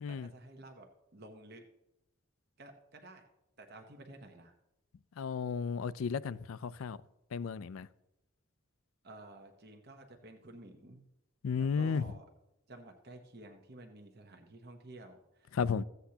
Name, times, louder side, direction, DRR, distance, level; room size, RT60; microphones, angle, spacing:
voice 1, 0.1-1.6 2.6-3.3 3.6-4.5 9.0-11.0 11.6-12.2 12.7-15.5, right 2 dB, 50° right, 0.9 m, -52 dB
voice 2, 5.2-7.0 7.3-7.9 11.4-12.1 15.5-15.8, left 6 dB, 80° left, 0.4 m, -33 dB
14.5 x 8.1 x 2.8 m
head